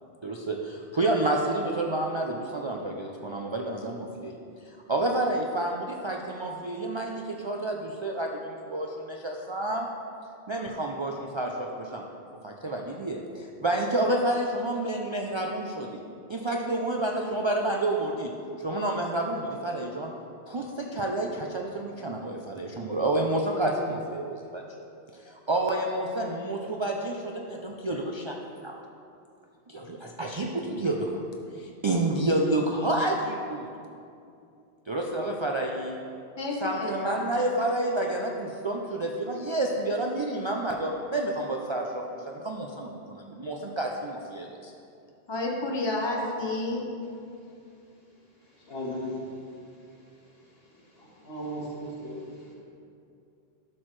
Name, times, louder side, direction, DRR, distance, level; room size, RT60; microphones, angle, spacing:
voice 1, 0.2-4.4 4.7-9.9 10.5-12.0 12.4-16.0 16.3-18.3 18.6-20.1 20.5-24.6 25.2-28.4 28.6-28.7 29.7-31.2 31.5-33.7 34.9-36.0 36.6-44.7, right 2 dB, 40° right, 0 dB, 0.4 m, -29 dB
voice 2, 36.4-37.3 45.3-46.9, left 2 dB, 25° left, -1 dB, 1.0 m, -30 dB
voice 3, 48.5-49.4 50.9-52.5, equal, 70° left, -4 dB, 1.8 m, -37 dB
11.5 x 6.3 x 3.2 m, 2.6 s
omnidirectional pair, 1.1 m